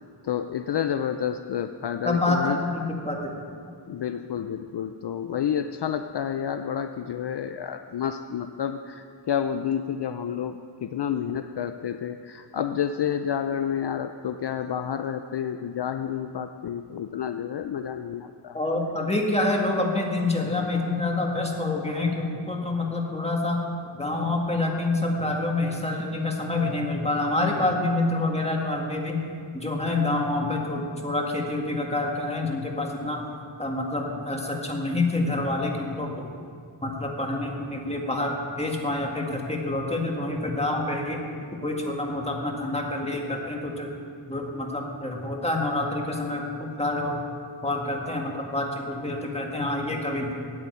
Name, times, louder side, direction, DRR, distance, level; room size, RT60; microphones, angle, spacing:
voice 1, 0.2-2.6 3.9-18.6, left 8 dB, 65° left, 9 dB, 0.5 m, -30 dB
voice 2, 2.0-3.3 18.5-23.6 24.0-29.2 29.5-33.2 33.6-36.3 36.8-43.9 44.3-47.2 47.6-50.5, left 2 dB, 15° left, 0 dB, 1.9 m, -27 dB
9.5 x 8.9 x 8.4 m, 2.3 s
wide cardioid pair, 75°, 44 cm